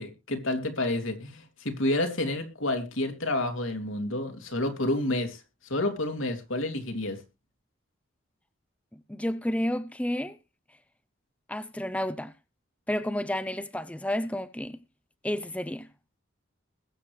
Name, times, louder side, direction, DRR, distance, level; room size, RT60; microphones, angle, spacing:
voice 1, 0.0-5.4 5.7-7.2, left 1 dB, 85° left, 2.9 m, -29 dB
voice 2, 9.1-10.4 11.5-12.3 12.9-14.8 15.2-15.9, left 1 dB, 5° left, 0.5 m, -31 dB
21.0 x 8.1 x 3.3 m
head